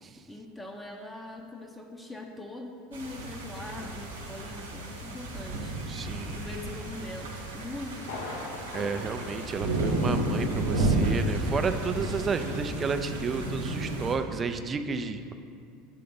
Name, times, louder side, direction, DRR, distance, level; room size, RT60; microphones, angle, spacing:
voice 1, 0.3-5.8 6.3-8.7, left 1 dB, 5° left, 2 dB, 0.6 m, -42 dB
sound 1, 2.9-14.2, right 2 dB, 85° right, 0.9 m, -32 dB
voice 2, 5.9-6.4 8.7-15.3, right 5 dB, 30° right, 8 dB, 0.4 m, -32 dB
Thunder, 8.0-10.6 10.8-10.9 11.5-11.6, left 3 dB, 75° left, 0.7 m, -42 dB
6.5 x 3.8 x 5.3 m, 2.3 s
hypercardioid pair, 80°, 0 cm